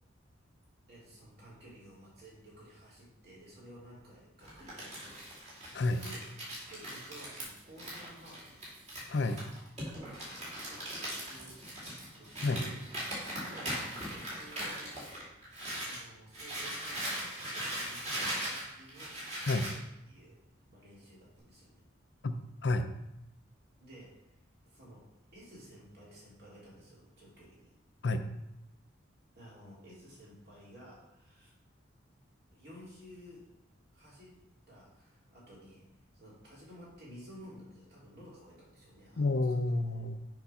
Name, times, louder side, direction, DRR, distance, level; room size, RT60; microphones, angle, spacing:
voice 1, 0.9-5.2 5.9-6.3 6.7-8.6 9.9-10.2 10.6-12.8 13.1-20.4 20.7-21.8 23.8-24.4 24.6-25.1 25.3-27.7 29.3-31.5 32.5-33.5 33.9-39.6, right 1 dB, 50° right, -6 dB, 2.9 m, -54 dB
Crumpling crinkling, 4.4-16.0 16.3-19.8, right 1 dB, 35° right, 2.5 m, -40 dB
voice 2, 9.1-9.4 12.4-12.6 19.5-19.7 22.2-22.9 28.0-28.2 39.2-40.3, left 2 dB, 60° left, 8 dB, 0.5 m, -30 dB
7.0 x 4.0 x 5.6 m, 0.85 s
head